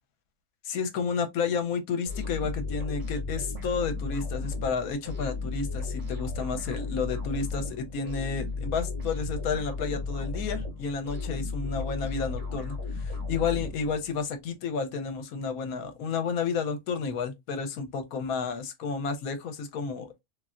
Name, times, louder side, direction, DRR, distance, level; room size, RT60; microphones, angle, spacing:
voice 1, 0.6-20.1, left 5 dB, 70° left, 1.1 m, -31 dB
sound 1, 2.1-14.3, left 3 dB, 35° right, 1.2 m, -34 dB
3.2 x 2.7 x 2.4 m
omnidirectional pair, 1.6 m